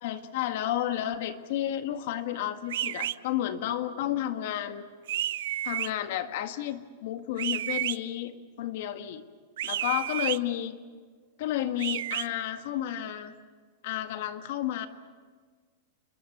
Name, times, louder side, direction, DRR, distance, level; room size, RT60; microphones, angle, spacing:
voice 1, 0.0-4.9 5.6-8.3 8.6-9.2 9.6-10.8 11.4-13.3 13.8-14.9, left 12 dB, 55° left, 8 dB, 1.8 m, -31 dB
sound 1, 2.7-3.2 5.1-5.9 7.4-8.0 9.6-10.4 11.8-12.3, right 13 dB, 75° right, 0.6 m, -31 dB
29.5 x 21.5 x 6.8 m, 1.5 s
supercardioid pair, 155°, 0 cm